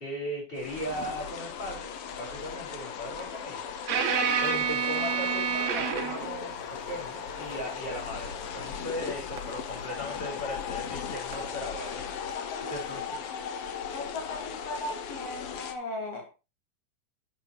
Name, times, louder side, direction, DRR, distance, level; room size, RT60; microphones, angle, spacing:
voice 1, 0.0-1.9 2.2-3.6 4.4-6.5 6.9-12.0 12.6-13.2, equal, 15° left, 4.9 m, -37 dB
Wind Rustles Leaves on Branch as Train Goes By, 0.6-15.7, left 7 dB, 70° left, 1.4 m, -37 dB
sound 1, 3.9-6.4 9.4-9.5 11.3-11.5, right 7 dB, 65° right, 2.3 m, -28 dB
voice 2, 12.3-12.7 13.1-13.2 13.9-16.3, left 2 dB, 50° left, 3.1 m, -37 dB
9.9 x 8.3 x 3.0 m
omnidirectional pair, 3.8 m